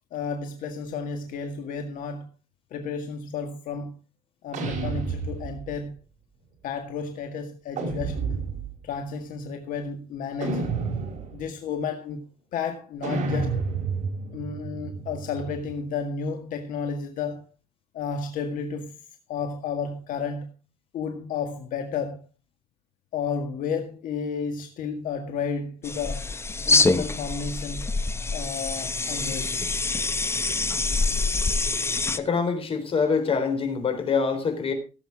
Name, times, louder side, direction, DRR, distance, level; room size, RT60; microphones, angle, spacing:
voice 1, 0.1-2.3 2.7-3.9 4.4-5.9 6.6-8.2 8.8-10.8 11.3-13.6 14.3-17.4 17.9-19.0 19.3-20.5 20.9-22.2 23.1-26.3 26.7-27.9 28.3-29.6, left 5 dB, 70° left, 1.9 m, -32 dB
sound 1, 4.5-5.8 7.8-8.8 10.4-11.5 13.0-15.7, right 4 dB, 60° right, 5.5 m, -30 dB
sound 2, 25.8-32.2, left 3 dB, 20° left, 1.0 m, -25 dB
voice 2, 32.2-34.7, left 5 dB, 40° left, 4.0 m, -25 dB
17.0 x 8.1 x 4.9 m
cardioid pair, 120°, 14 cm